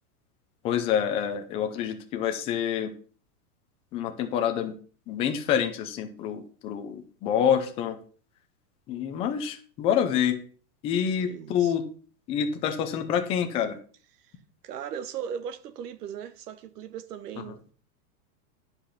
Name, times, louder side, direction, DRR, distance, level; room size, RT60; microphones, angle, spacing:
voice 1, 0.6-2.9 3.9-4.8 5.1-8.0 8.9-10.4 10.8-11.9 12.3-13.8 17.4-17.5, left 8 dB, 15° left, 0.5 m, -27 dB
voice 2, 11.2-11.7 14.6-17.7, right 8 dB, 85° right, 1.2 m, -38 dB
10.5 x 5.2 x 5.7 m
supercardioid pair, 160°, 46 cm